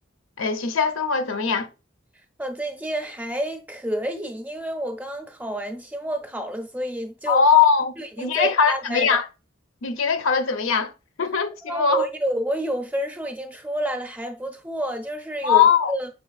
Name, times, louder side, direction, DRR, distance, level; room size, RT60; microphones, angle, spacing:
voice 1, 0.4-1.7 7.3-9.2 9.8-10.9 11.2-12.0 15.4-15.9, left 6 dB, 75° left, 0.5 m, -20 dB
voice 2, 2.4-7.4 8.0-9.2 11.6-16.1, right 1 dB, 10° right, 0.5 m, -29 dB
6.1 x 3.7 x 2.3 m
head